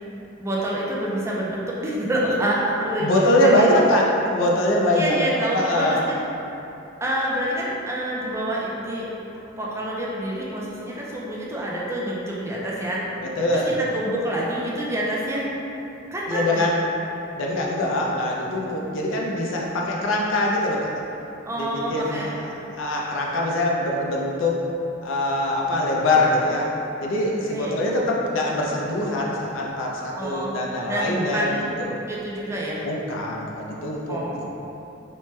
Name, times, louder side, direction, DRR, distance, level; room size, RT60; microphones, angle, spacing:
voice 1, 0.4-3.7 5.0-6.2 7.0-9.1 9.6-13.0 13.5-15.5 16.1-16.7 21.5-22.4 27.5-27.8 30.1-32.9 34.1-34.5, right 1 dB, 15° right, -5 dB, 0.3 m, -27 dB
voice 2, 3.0-5.2 5.5-6.1 13.2-13.8 16.3-16.8 17.4-20.9 21.6-22.3 22.8-24.7 25.0-26.7 27.0-31.5 31.8-32.0 32.8-34.4, left 1 dB, 80° left, -2 dB, 0.4 m, -23 dB
3.1 x 2.1 x 3.0 m, 2.9 s
head